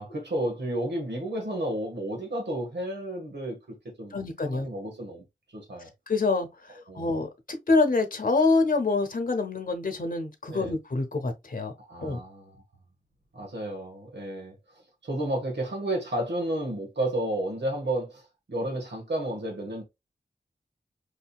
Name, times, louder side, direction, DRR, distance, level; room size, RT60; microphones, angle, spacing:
voice 1, 0.0-4.2 4.5-5.9 6.9-7.1 10.5-10.7 11.9-12.6 13.3-14.5 15.0-19.8, right 1 dB, 75° right, 1.7 m, -32 dB
voice 2, 4.1-4.7 6.1-11.7 12.0-12.2, left 3 dB, 50° left, 0.9 m, -26 dB
4.9 x 2.8 x 2.4 m
cardioid pair, 40°, 18 cm